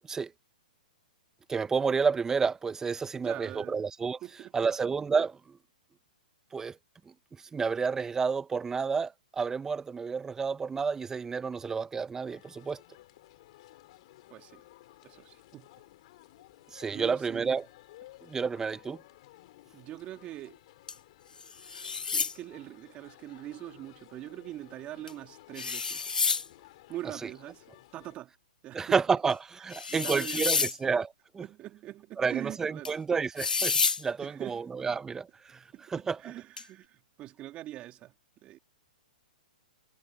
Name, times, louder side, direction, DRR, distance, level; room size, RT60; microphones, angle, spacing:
voice 1, 1.5-4.2 4.5-5.6 6.5-6.8 7.1-7.2 7.5-12.8 16.7-17.6 18.2-19.0 28.7-31.1 31.3-31.4 32.2-35.6 35.9-36.2, right 5 dB, 10° right, 1.0 m, -30 dB
voice 2, 3.1-3.8 4.2-4.5 14.3-14.6 15.0-15.7 16.9-17.6 19.7-20.6 21.8-26.2 26.9-28.3 28.6-29.0 29.9-30.7 31.4-33.0 34.2-34.7 35.7-38.1 38.4-38.6, right 14 dB, 30° right, 3.5 m, -43 dB
sound 1, 12.2-28.2, left 17 dB, 50° left, 5.9 m, -56 dB
sound 2, 20.9-21.0 21.4-22.4 25.1-25.2 25.6-26.5 29.3-29.4 29.7-30.8 32.9-33.0 33.4-34.0 36.6-36.7, left 5 dB, 90° left, 0.5 m, -29 dB
hypercardioid pair, 125°, 4 cm